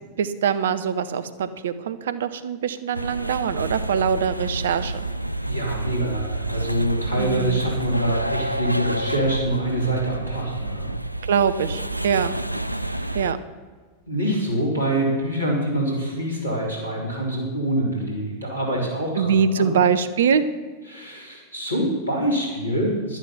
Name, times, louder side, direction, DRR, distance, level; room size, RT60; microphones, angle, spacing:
voice 1, 0.2-5.1 7.2-7.6 11.3-12.3 13.1-13.4 19.2-20.4, right 7 dB, 60° right, 13 dB, 0.7 m, -23 dB
sound 1, 2.9-13.3, right 1 dB, 90° right, 0.4 m, -29 dB
voice 2, 5.4-10.9 12.7-13.3 14.1-19.7 20.9-23.2, right 1 dB, 80° left, -2 dB, 3.8 m, -25 dB
11.5 x 10.5 x 5.7 m, 1.5 s
figure-of-eight pair, 90°, 0 cm